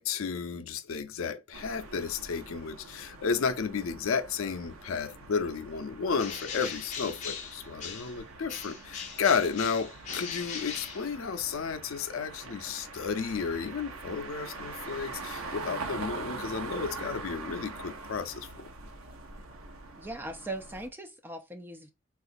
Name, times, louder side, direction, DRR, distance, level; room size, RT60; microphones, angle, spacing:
voice 1, 0.0-18.7, left 5 dB, 80° left, 0.5 m, -32 dB
sound 1, 1.5-20.9, right 3 dB, 85° right, 0.7 m, -43 dB
Bird, 6.1-8.2 8.5-11.6, left 6 dB, 35° left, 0.6 m, -39 dB
voice 2, 20.0-21.9, right 2 dB, 10° right, 0.3 m, -39 dB
3.7 x 2.4 x 2.5 m
head